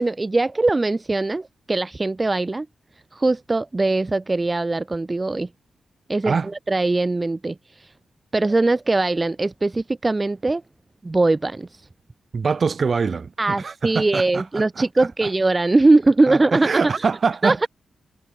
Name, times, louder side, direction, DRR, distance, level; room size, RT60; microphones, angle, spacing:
voice 1, 0.0-2.7 2.9-5.5 6.1-7.9 8.3-10.6 11.0-11.9 13.4-17.1 17.4-17.7, right 2 dB, 25° right, 1.1 m, -21 dB
voice 2, 12.3-13.3 13.6-14.4 14.8-14.9 16.3-17.7, right 5 dB, 50° right, 4.0 m, -23 dB
cardioid pair, 80°, 0 cm